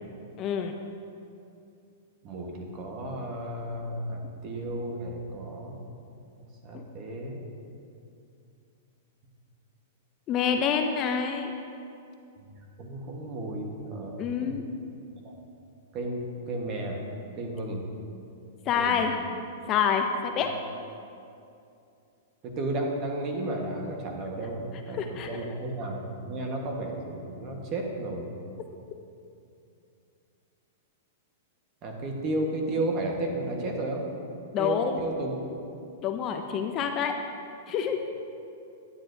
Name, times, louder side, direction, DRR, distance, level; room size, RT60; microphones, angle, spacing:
voice 1, 0.4-0.7 6.7-6.8 10.3-11.5 14.2-14.6 18.7-19.1 19.7-20.5 25.0-25.3 34.5-35.0 36.0-37.1 37.7-38.0, left 7 dB, 30° left, 5 dB, 0.4 m, -27 dB
voice 2, 2.2-5.8 6.4-7.4 12.4-14.6 15.2-15.4 15.9-17.0 17.4-17.9 18.7-19.1 20.4-20.5 22.4-28.3 31.8-34.1 34.6-35.4, right 1 dB, 30° right, 1 dB, 1.2 m, -33 dB
9.8 x 9.7 x 2.6 m, 2.6 s
hypercardioid pair, 150°, 0 cm